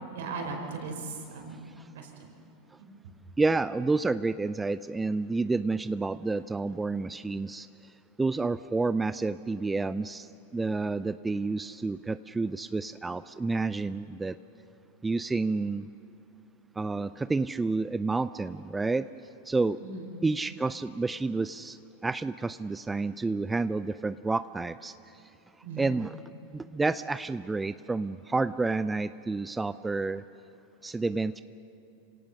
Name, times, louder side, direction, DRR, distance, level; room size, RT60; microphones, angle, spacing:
voice 1, 0.1-1.7 1.9-2.3 2.8-2.9 19.8-20.1 25.6-25.9, right 4 dB, 70° right, 3 dB, 4.4 m, -38 dB
voice 2, 3.4-7.7 8.2-14.4 15.0-15.9 16.8-19.1 19.5-19.8 20.2-24.9 25.8-26.2 26.5-30.2 30.8-31.4, right 3 dB, 10° right, 14 dB, 0.4 m, -29 dB
26.5 x 17.5 x 6.4 m, 2.9 s
hypercardioid pair, 100°, 0 cm